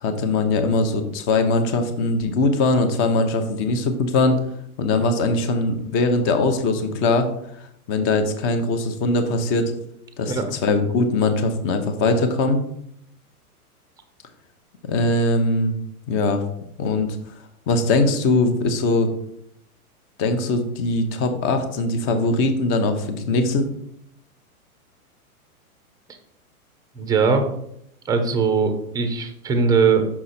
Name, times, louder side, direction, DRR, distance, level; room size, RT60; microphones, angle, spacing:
voice 1, 0.0-4.4 4.8-7.3 7.9-9.7 10.2-12.6 14.9-15.7 16.1-16.4 16.8-17.1 17.7-19.1 20.2-23.7, left 2 dB, 30° left, 7 dB, 0.9 m, -21 dB
voice 2, 26.9-27.5 28.0-30.0, right 5 dB, 10° right, 7 dB, 0.6 m, -20 dB
5.9 x 4.8 x 4.2 m, 0.74 s
hypercardioid pair, 125°, 45 cm